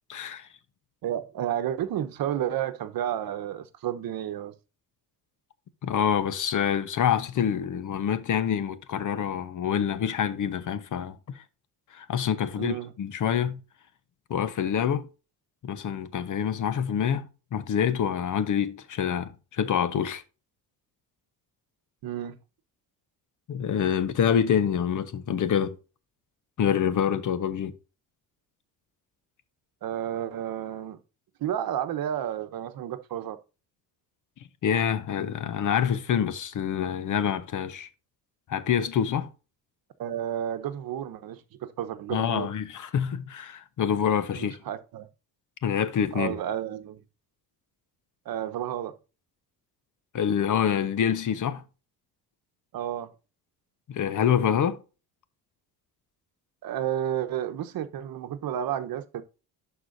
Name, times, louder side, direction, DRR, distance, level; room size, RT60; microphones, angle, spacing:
voice 1, 0.1-0.5 5.8-11.4 11.9-13.6 14.3-15.1 15.6-20.2 23.5-25.8 26.6-27.8 34.6-37.9 38.5-39.3 42.1-44.6 45.6-46.3 50.1-51.6 53.9-54.8, left 8 dB, 50° left, 1.0 m, -26 dB
voice 2, 1.0-4.5 12.6-12.9 22.0-22.4 29.8-31.0 31.4-33.4 40.0-42.5 44.3-45.1 46.1-47.0 48.2-48.9 52.7-53.1 56.6-59.2, right 10 dB, 60° right, 1.0 m, -31 dB
11.5 x 4.7 x 2.6 m
supercardioid pair, 80°, 39 cm